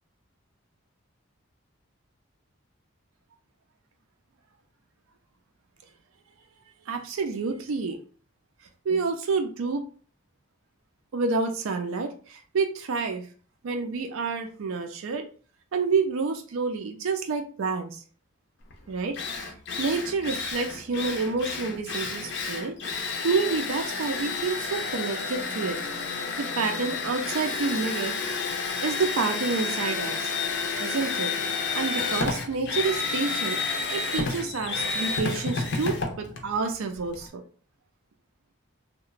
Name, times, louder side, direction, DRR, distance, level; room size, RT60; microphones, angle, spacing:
voice 1, 6.9-8.0 8.9-9.8 11.1-13.3 13.6-15.3 15.7-18.0 18.9-22.8 23.2-25.8 26.4-28.2 28.8-30.4 30.8-31.3 31.7-33.6 33.9-37.4, right 4 dB, 75° right, 5 dB, 0.4 m, -29 dB
Drill, 18.7-18.8 19.1-37.3, left 4 dB, 55° left, 0.5 m, -30 dB
2.8 x 2.1 x 2.4 m, 0.41 s
head